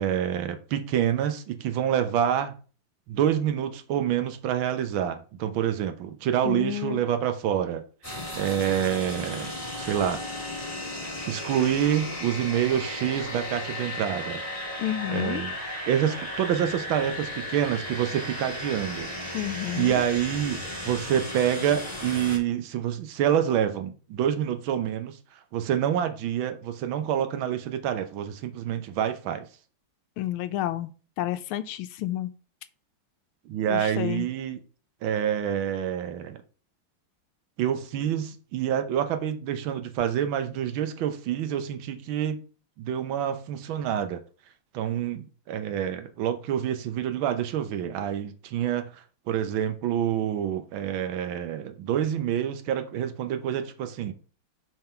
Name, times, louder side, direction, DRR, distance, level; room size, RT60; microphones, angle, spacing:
voice 1, 0.0-2.5 3.1-9.5 9.8-10.2 11.3-14.4 15.1-15.5 15.9-19.4 19.7-25.2 25.5-29.4 33.5-34.6 35.0-36.4 37.6-42.4 42.8-44.2 44.7-54.1, right 10 dB, 70° right, 1.6 m, -27 dB
voice 2, 6.4-7.0 14.8-15.4 19.3-20.0 30.2-30.9 31.2-32.3 33.7-34.3, left 13 dB, 80° left, 1.4 m, -30 dB
sound 1, 8.0-22.4, left 1 dB, 5° left, 3.6 m, -35 dB
5.8 x 5.6 x 4.4 m
omnidirectional pair, 2.4 m